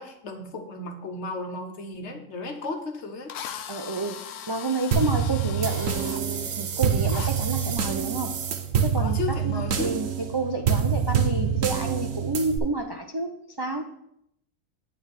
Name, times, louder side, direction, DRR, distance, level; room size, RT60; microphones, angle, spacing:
voice 1, 0.0-3.3 9.0-9.9, left 3 dB, 60° left, 5 dB, 1.3 m, -34 dB
Drill, 2.6-2.7 3.3-6.2 7.1-7.3, left 9 dB, 80° left, 1.0 m, -39 dB
voice 2, 3.7-8.4 8.8-9.2 9.4-13.8, right 3 dB, 40° right, 3 dB, 0.3 m, -30 dB
sound 1, 4.9-12.6, right 7 dB, 80° right, 1.2 m, -26 dB
9.3 x 3.5 x 6.6 m, 0.76 s
omnidirectional pair, 1.3 m